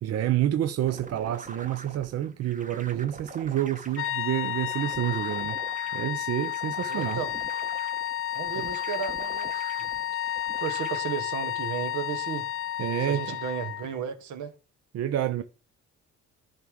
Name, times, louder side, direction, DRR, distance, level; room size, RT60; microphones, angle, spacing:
voice 1, 0.0-5.6 5.9-7.2 8.6-8.7 12.8-13.4 14.9-15.4, right 12 dB, 55° right, 0.6 m, -28 dB
sound 1, 0.8-11.0, right 4 dB, 25° right, 1.0 m, -44 dB
sound 2, 3.9-13.9, left 12 dB, 45° left, 0.4 m, -32 dB
voice 2, 6.9-7.3 8.3-9.9 10.6-12.5 13.0-14.5, right 8 dB, 75° right, 1.2 m, -34 dB
10.5 x 3.6 x 6.2 m
cardioid pair, 90°, 30 cm